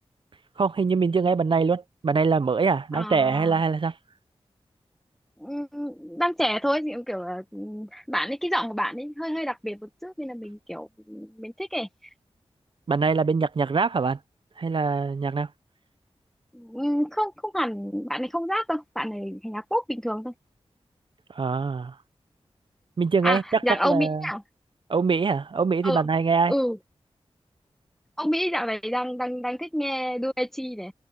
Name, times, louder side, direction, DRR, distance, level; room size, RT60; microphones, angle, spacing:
voice 1, 0.6-3.9 12.9-14.2 14.6-15.5 21.3-21.9 23.0-24.2 24.9-26.5, right 5 dB, 55° right, 0.6 m, -23 dB
voice 2, 2.9-3.6 5.4-11.9 16.5-20.3 23.2-24.4 25.8-26.0 26.5-26.8 28.2-30.9, equal, 5° left, 0.9 m, -28 dB
wide cardioid pair, 85°, 11 cm